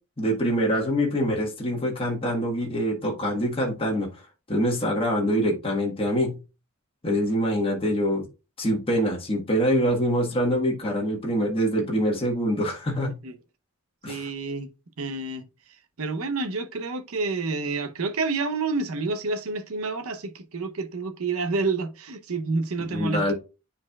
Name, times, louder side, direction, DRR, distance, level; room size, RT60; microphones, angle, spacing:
voice 1, 0.2-4.1 4.5-6.4 7.0-8.3 8.6-13.2 14.0-14.2 22.8-23.3, equal, 25° left, 1.4 m, -25 dB
voice 2, 14.0-14.7 15.0-23.3, right 3 dB, 70° right, 0.8 m, -29 dB
9.7 x 4.3 x 2.3 m
head